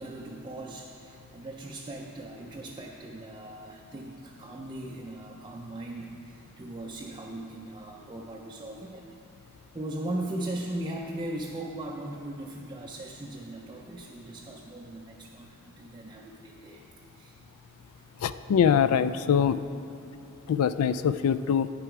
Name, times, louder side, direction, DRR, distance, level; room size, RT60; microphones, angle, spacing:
voice 1, 0.0-9.1 9.7-16.8 17.1-17.4 18.0-18.1 19.8-19.9, right 1 dB, 20° right, -1 dB, 0.4 m, -39 dB
voice 2, 18.2-19.6 20.5-21.7, left 7 dB, 70° left, 14 dB, 0.3 m, -23 dB
8.9 x 6.8 x 4.7 m, 2.7 s
head